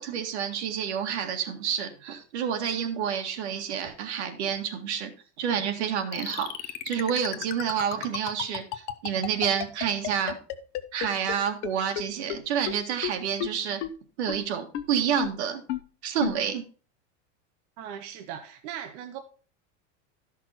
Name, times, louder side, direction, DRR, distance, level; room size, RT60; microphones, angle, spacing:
voice 1, 0.0-5.1 5.4-10.4 10.9-13.8 14.2-15.6 16.0-16.6, right 8 dB, 65° right, 5 dB, 1.9 m, -29 dB
sound 1, 6.1-11.3 11.6-11.7 12.0-12.1 12.3-12.4 12.7-12.8 13.0-13.1 13.4-13.5 13.8-13.9 14.3-14.4 14.7-14.8 15.2-15.3 15.7-15.8 16.2-16.3, left 13 dB, 30° left, 0.6 m, -31 dB
voice 2, 17.8-19.2, right 9 dB, 35° right, 5 dB, 0.8 m, -39 dB
12.5 x 6.0 x 4.3 m, 0.38 s
supercardioid pair, 175°, 36 cm